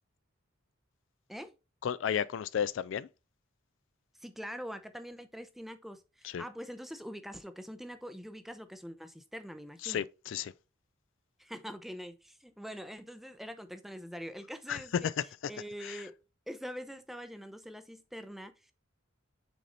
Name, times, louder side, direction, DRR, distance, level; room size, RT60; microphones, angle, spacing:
voice 1, 1.8-3.1 6.3-6.4 9.8-10.5 14.7-14.8 15.8-16.0, left 8 dB, 65° left, 0.3 m, -33 dB
voice 2, 4.2-10.0 11.4-15.1 15.5-16.1 16.5-18.7, equal, ahead, 0.5 m, -44 dB
6.2 x 4.2 x 3.9 m
head